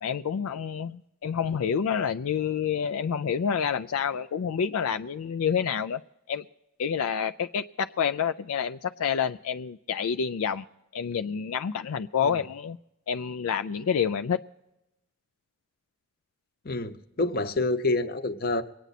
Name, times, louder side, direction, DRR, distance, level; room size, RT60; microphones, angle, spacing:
voice 1, 0.0-6.0 6.3-6.4 6.8-10.6 10.9-12.8 13.1-14.4, left 7 dB, 75° left, 9 dB, 0.4 m, -28 dB
voice 2, 16.6-18.6, left 2 dB, 40° left, 10 dB, 0.8 m, -27 dB
23.5 x 9.2 x 4.1 m, 0.90 s
head